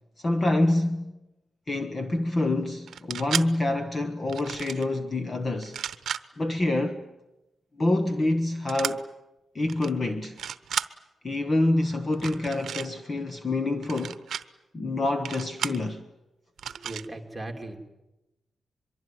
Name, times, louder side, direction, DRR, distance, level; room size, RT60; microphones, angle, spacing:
voice 1, 0.2-1.1 1.7-5.8 6.4-7.0 7.8-9.1 9.5-10.4 11.2-14.2 14.7-16.1, left 2 dB, 25° left, 1.1 m, -26 dB
sound 1, 2.9-3.5 4.3-4.8 5.6-6.2 8.7-8.9 9.7-9.9 10.2-10.9 12.1-12.9 13.8-14.4 15.2-15.8 16.6-17.0, right 8 dB, 65° right, 0.9 m, -33 dB
voice 2, 16.6-17.8, right 2 dB, 5° right, 3.0 m, -38 dB
24.0 x 23.0 x 9.4 m
wide cardioid pair, 165°, 0 cm